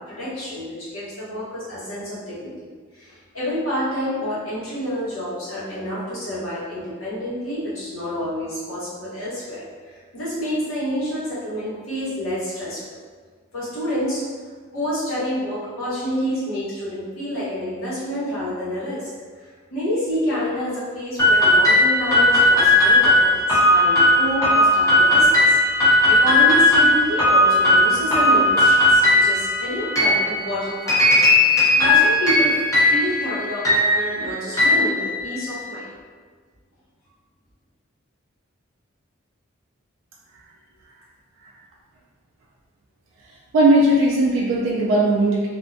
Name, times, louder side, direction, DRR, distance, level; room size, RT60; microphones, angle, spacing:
voice 1, 0.0-2.5 2.9-12.8 13.5-14.2 14.7-19.1 19.7-31.3 31.8-32.6 32.9-36.0, equal, 80° left, -10 dB, 1.1 m, -28 dB
sound 1, 21.2-35.6, left 1 dB, 15° left, 0.5 m, -17 dB
voice 2, 43.5-45.5, right 1 dB, 70° right, -4 dB, 0.3 m, -17 dB
2.5 x 2.1 x 2.5 m, 1.5 s
head